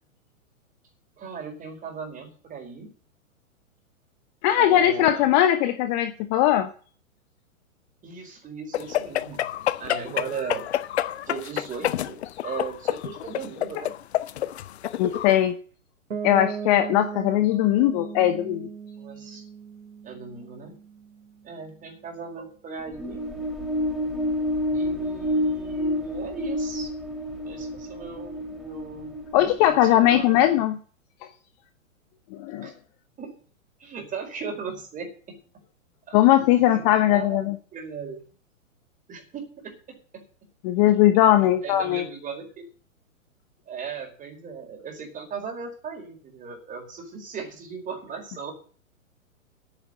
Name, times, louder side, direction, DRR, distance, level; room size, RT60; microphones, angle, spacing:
voice 1, 1.2-2.9 4.6-5.3 8.0-9.5 9.8-10.7 11.2-13.9 15.0-15.5 19.0-19.4 20.0-20.8 21.4-23.2 24.7-26.9 27.4-30.4 32.6-32.7 33.2-33.3 33.8-35.4 36.1-36.2 36.5-36.8 37.1-38.2 39.1-40.2 40.9-41.0 41.4-42.6 43.7-48.5, right 5 dB, 20° right, 3 dB, 4.7 m, -37 dB
voice 2, 4.4-6.7 15.0-15.6 16.2-18.7 29.3-30.8 32.4-32.7 36.1-37.5 40.6-42.0, left 12 dB, 30° left, 9 dB, 1.0 m, -20 dB
sound 1, 8.7-15.4, left 12 dB, 50° left, 0.9 m, -29 dB
Piano, 16.1-21.8, right 6 dB, 70° right, 2.5 m, -37 dB
sound 2, 22.8-30.5, left 1 dB, ahead, 2.7 m, -29 dB
10.5 x 9.7 x 7.7 m, 0.42 s
figure-of-eight pair, 115°, 41 cm